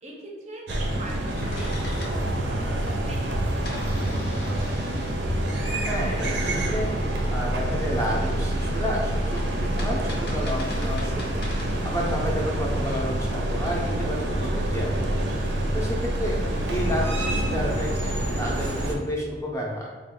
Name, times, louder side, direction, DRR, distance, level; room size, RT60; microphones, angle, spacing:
voice 1, 0.0-3.3 3.6-4.7 16.1-16.3, right 1 dB, 40° right, -1 dB, 0.5 m, -41 dB
sound 1, 0.7-19.0, right 1 dB, 85° right, 0.5 m, -27 dB
sound 2, 1.3-6.2 8.2-13.4, left 1 dB, 65° left, 0.6 m, -39 dB
voice 2, 5.8-6.9 7.3-11.4 11.8-15.1 15.7-16.4 16.7-19.9, equal, 15° left, -2 dB, 0.5 m, -31 dB
3.4 x 2.1 x 3.7 m, 1.4 s
head